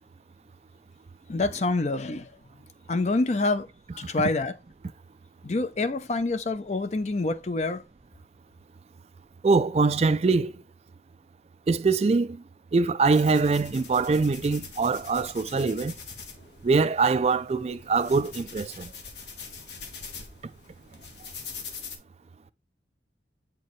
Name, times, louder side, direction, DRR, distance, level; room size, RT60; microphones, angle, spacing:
voice 1, 1.3-2.3 2.9-3.7 4.0-4.5 5.4-7.8, left 3 dB, 40° left, 0.5 m, -26 dB
voice 2, 9.4-10.5 11.7-12.4 12.7-15.9 16.6-18.9, right 4 dB, 35° right, 0.3 m, -23 dB
sound 1, 13.1-22.0, left 5 dB, 80° left, 1.4 m, -43 dB
8.3 x 4.5 x 3.1 m
head